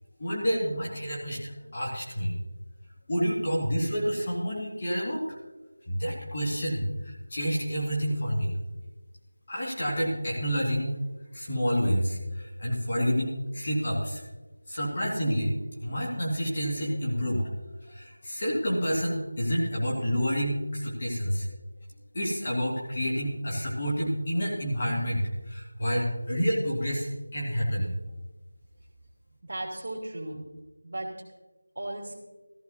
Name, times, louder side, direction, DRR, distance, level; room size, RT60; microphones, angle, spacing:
voice 1, 0.2-2.3 3.1-5.3 5.9-8.5 9.5-11.0 11.3-14.2 14.7-17.5 17.8-21.5 22.1-27.9, equal, 25° left, -4 dB, 1.9 m, -29 dB
voice 2, 29.4-30.5 30.8-31.1 31.7-32.1, right 1 dB, 40° right, -2 dB, 2.6 m, -35 dB
15.0 x 14.5 x 2.7 m, 1.2 s
figure-of-eight pair, 175°, 0 cm